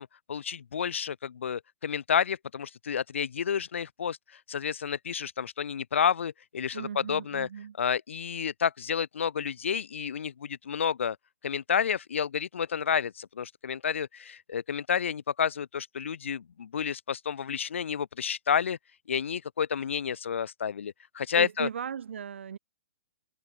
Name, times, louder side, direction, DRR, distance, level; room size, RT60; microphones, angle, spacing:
voice 1, 0.0-7.5 7.8-11.2 11.4-18.8 19.1-21.7, left 7 dB, 85° left, 1.4 m, -30 dB
voice 2, 6.7-7.7 21.3-22.6, right 8 dB, 75° right, 4.8 m, -37 dB
hypercardioid pair, 165°, 7 cm